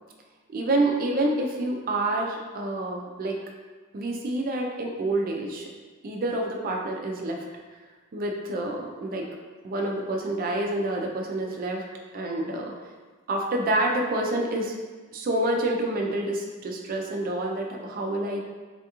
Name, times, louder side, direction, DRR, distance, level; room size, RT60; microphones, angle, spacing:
voice 1, 0.5-3.4 3.9-5.7 6.0-7.4 8.1-9.3 9.6-11.8 12.1-12.7 13.3-14.7 15.1-18.4, right 1 dB, 40° right, 0 dB, 0.4 m, -28 dB
3.4 x 2.3 x 2.8 m, 1.4 s
head